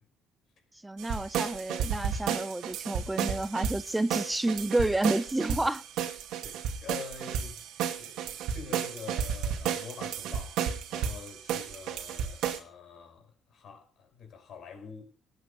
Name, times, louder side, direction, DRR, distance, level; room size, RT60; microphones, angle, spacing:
voice 1, 0.8-5.8, right 2 dB, 15° right, 0.8 m, -30 dB
sound 1, 1.0-12.6, right 8 dB, 75° right, 2.2 m, -33 dB
voice 2, 6.4-7.6 8.0-10.6 10.9-15.1, left 6 dB, 60° left, 5.4 m, -46 dB
18.5 x 9.1 x 5.4 m
supercardioid pair, 60°, 0 cm